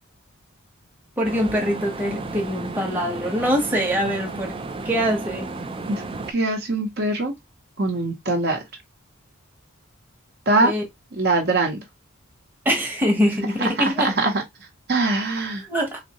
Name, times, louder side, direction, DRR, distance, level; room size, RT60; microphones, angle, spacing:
voice 1, 1.2-4.6 4.8-5.5 10.6-10.8 12.6-14.1 15.7-16.0, equal, 10° right, 0.9 m, -23 dB
sound 1, 1.2-6.3, right 3 dB, 25° right, 0.4 m, -33 dB
voice 2, 6.3-7.3 7.8-8.6 10.5-10.7 11.2-11.8 14.0-14.4 14.9-15.7, right 2 dB, 50° right, 0.9 m, -22 dB
4.0 x 2.7 x 2.9 m
head